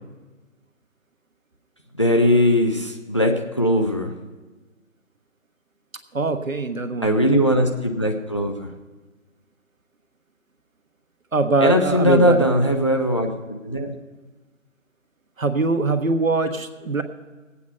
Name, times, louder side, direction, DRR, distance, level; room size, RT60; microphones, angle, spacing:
voice 1, 2.0-4.1 7.0-8.7 11.6-13.9, equal, 20° left, 2 dB, 0.6 m, -20 dB
voice 2, 6.1-7.2 11.3-12.5 15.4-17.0, right 3 dB, 75° right, 6 dB, 1.4 m, -22 dB
19.5 x 8.4 x 5.4 m, 1.3 s
figure-of-eight pair, 150°, 40 cm